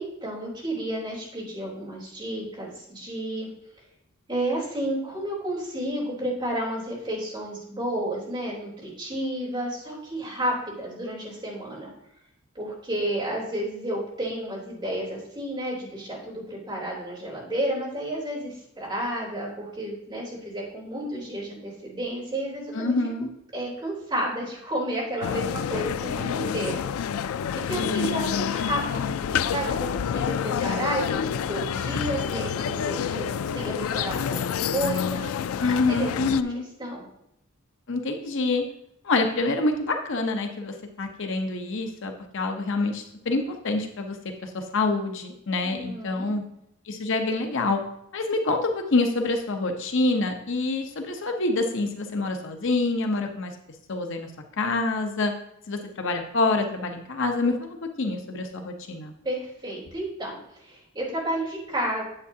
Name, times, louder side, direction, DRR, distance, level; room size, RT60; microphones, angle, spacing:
voice 1, 0.0-3.5 4.3-11.9 12.5-22.9 23.5-26.8 27.7-35.3 35.9-36.3 36.8-37.1 45.6-46.3 59.2-62.0, right 1 dB, 20° right, -6 dB, 3.3 m, -31 dB
voice 2, 22.7-23.3 27.7-28.3 35.6-36.6 37.9-38.6 39.0-46.4 46.9-47.8 48.1-53.5 53.9-54.3 54.6-55.3 55.7-57.7 58.0-59.1, left 3 dB, 65° left, 4 dB, 0.8 m, -26 dB
sound 1, 25.2-36.4, left 8 dB, 85° left, 0.3 m, -28 dB
9.0 x 8.0 x 2.8 m, 0.78 s
head